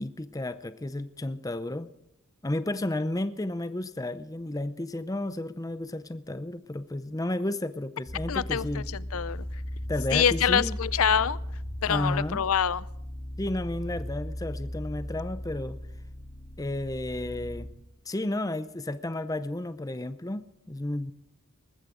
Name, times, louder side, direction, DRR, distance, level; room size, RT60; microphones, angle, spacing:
voice 1, 0.0-1.9 2.4-8.8 9.9-10.8 11.9-12.4 13.4-15.8 16.6-17.7 18.1-21.1, left 1 dB, 15° left, 12 dB, 0.6 m, -32 dB
sound 1, 8.1-17.7, equal, 35° left, 2.7 m, -37 dB
voice 2, 8.3-9.6 10.1-12.8, left 8 dB, 85° left, 19 dB, 0.6 m, -26 dB
20.0 x 15.0 x 3.8 m, 0.83 s
head